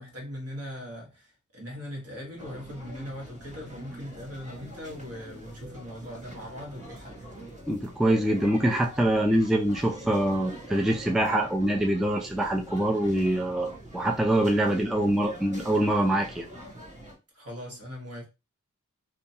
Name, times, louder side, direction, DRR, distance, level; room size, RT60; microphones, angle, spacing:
voice 1, 0.0-7.3 17.3-18.3, equal, 50° right, 1.4 m, -40 dB
sound 1, 2.4-17.1, equal, 25° right, 1.3 m, -44 dB
voice 2, 7.7-16.5, right 1 dB, ahead, 0.4 m, -24 dB
2.8 x 2.3 x 2.7 m
cardioid pair, 50°, 31 cm